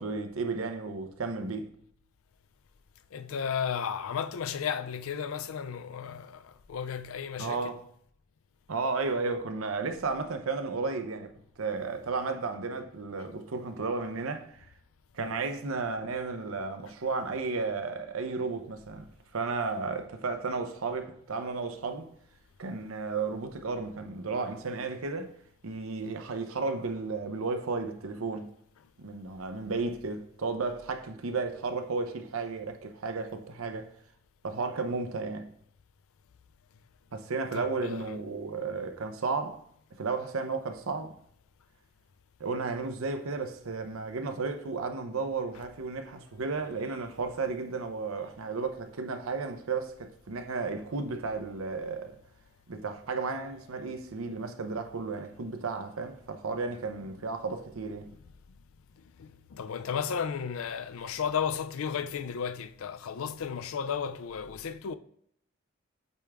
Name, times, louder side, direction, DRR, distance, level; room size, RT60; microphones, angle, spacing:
voice 1, 0.0-1.7 7.4-7.8 8.7-14.7 15.1-19.1 19.3-22.1 22.6-25.3 25.6-28.5 29.0-33.9 34.4-35.5 37.1-39.6 40.0-41.2 42.4-52.2 52.7-58.1, right 4 dB, 75° right, 0.7 m, -33 dB
voice 2, 3.1-7.7 37.5-38.2 59.2-64.9, left 7 dB, 75° left, 0.4 m, -34 dB
8.2 x 3.4 x 3.5 m
head